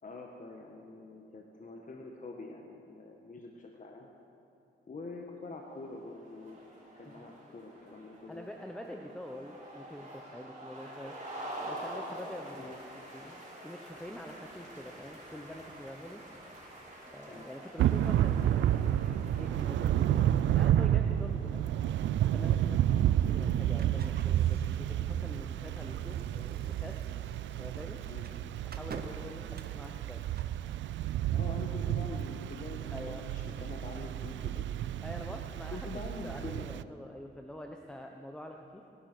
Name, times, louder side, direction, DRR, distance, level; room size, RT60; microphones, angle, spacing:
voice 1, 0.0-4.1 4.9-6.6 6.9-8.5 12.6-12.8 17.3-17.4 22.9-23.1 28.1-28.3 31.3-34.7 35.7-36.8, left 3 dB, 45° left, 1 dB, 1.5 m, -45 dB
sound 1, 5.8-21.5, right 1 dB, 40° right, 4.9 m, -47 dB
voice 2, 7.0-7.4 8.3-12.8 13.1-16.2 17.1-21.7 22.3-27.1 27.6-28.0 28.6-30.2 32.9-33.3 35.0-38.8, equal, 5° left, 3 dB, 1.0 m, -46 dB
Thunder / Rain, 17.8-36.8, right 11 dB, 85° right, 0.4 m, -30 dB
sound 2, 23.7-30.6, right 5 dB, 55° right, 1.1 m, -50 dB
19.0 x 11.5 x 6.2 m, 2.7 s
cardioid pair, 75°, 19 cm